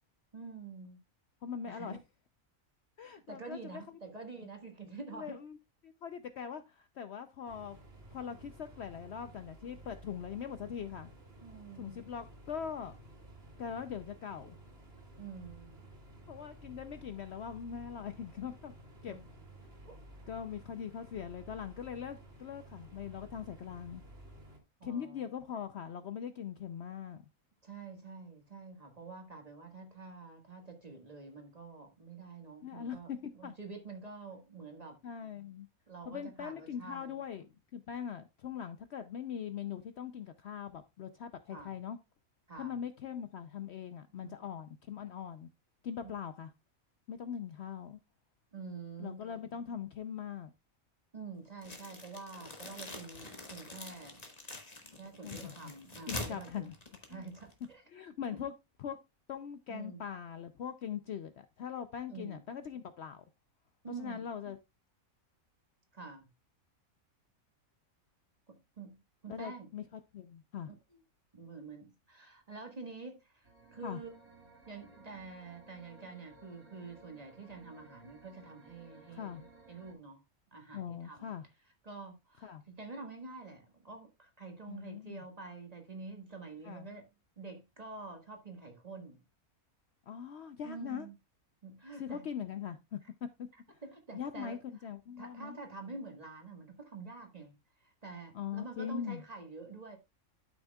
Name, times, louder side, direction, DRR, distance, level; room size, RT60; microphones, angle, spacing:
voice 1, 0.3-1.0 1.7-2.0 3.3-5.4 11.4-12.1 15.2-15.8 19.1-19.2 19.8-20.0 24.8-25.2 27.6-35.0 35.9-37.2 41.5-41.7 42.5-42.8 46.0-46.1 48.5-49.2 51.1-54.2 55.0-56.7 57.1-57.8 58.3-58.5 59.7-60.0 62.1-62.4 63.8-64.3 65.9-66.3 68.5-69.0 69.2-69.7 70.6-70.7 71.3-74.1 74.7-80.2 80.5-81.3 81.8-87.1 87.4-89.2 90.6-91.2 91.6-92.2 93.8-94.6 95.2-97.5 97.8-100.0, right 4 dB, 30° right, 1.7 m, -47 dB
voice 2, 1.4-2.0 3.0-4.0 5.1-5.6 5.8-7.8 8.1-11.1 11.7-12.9 13.6-14.6 16.3-18.7 19.0-19.2 20.3-24.0 24.8-27.2 32.6-33.5 35.0-35.7 36.1-42.0 42.6-45.5 45.8-46.5 47.1-48.0 49.0-50.5 55.2-55.6 56.1-56.7 57.1-57.3 57.9-58.5 58.8-59.0 59.3-63.2 64.0-64.6 69.3-70.7 73.8-74.0 79.1-79.4 80.7-81.4 82.4-82.6 84.7-85.2 86.6-86.9 90.1-91.1 92.0-93.0 93.4-93.8 94.1-95.6 98.3-99.2, left 8 dB, 60° left, 0.7 m, -41 dB
sound 1, 7.4-24.6, right 1 dB, 45° right, 2.2 m, -54 dB
sound 2, 51.6-57.7, left 2 dB, 30° left, 1.6 m, -45 dB
sound 3, 73.4-79.9, right 3 dB, 85° right, 2.4 m, -58 dB
12.0 x 6.3 x 2.3 m
omnidirectional pair, 1.5 m